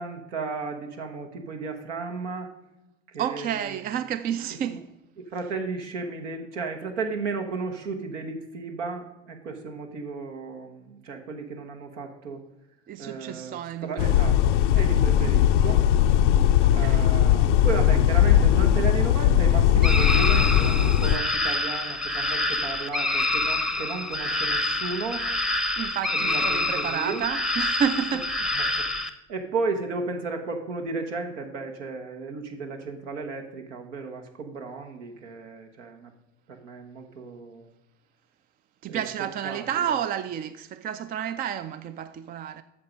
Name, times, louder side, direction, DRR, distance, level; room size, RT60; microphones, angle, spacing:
voice 1, 0.0-2.5 3.1-3.8 4.6-4.8 5.2-12.4 13.0-15.8 16.7-25.2 26.1-27.2 28.1-28.2 28.5-28.9 29.3-36.1 36.5-37.7 38.9-39.0 39.4-40.0, right 4 dB, 75° right, 1.3 m, -34 dB
voice 2, 3.2-4.9 12.9-14.1 16.6-17.1 25.8-28.3 38.8-42.6, right 9 dB, 25° right, 0.3 m, -30 dB
sound 1, 14.0-21.2, left 10 dB, 75° left, 0.5 m, -19 dB
sound 2, 19.8-29.1, left 2 dB, ahead, 0.7 m, -27 dB
8.5 x 6.4 x 5.3 m
hypercardioid pair, 75°, 36 cm